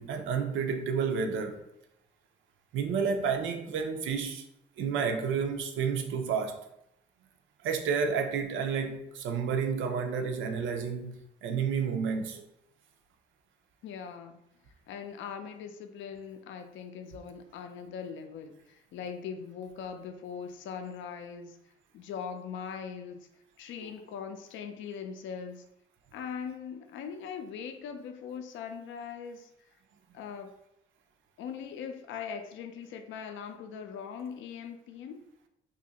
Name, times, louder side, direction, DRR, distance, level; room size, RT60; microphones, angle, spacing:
voice 1, 0.0-1.6 2.7-4.4 4.8-6.6 7.6-11.2 11.4-12.4, right 6 dB, 80° right, 0.5 m, -30 dB
voice 2, 13.8-14.4 14.9-21.6 21.9-23.3 23.6-25.6 26.1-29.5 30.1-30.5 31.4-35.3, left 7 dB, 75° left, 0.4 m, -41 dB
2.7 x 2.5 x 3.9 m
cardioid pair, 90°, 20 cm